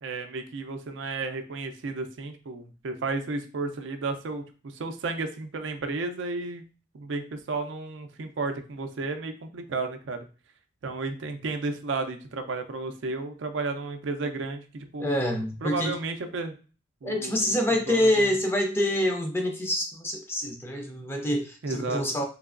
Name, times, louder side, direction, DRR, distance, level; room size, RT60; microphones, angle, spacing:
voice 1, 0.0-6.6 6.9-10.3 10.8-15.2 15.6-16.5 17.0-18.3 21.6-22.0, right 3 dB, 75° right, 7 dB, 0.4 m, -33 dB
voice 2, 15.0-15.9 17.0-22.2, left 1 dB, 10° left, 2 dB, 0.5 m, -26 dB
3.2 x 2.9 x 2.4 m, 0.35 s
head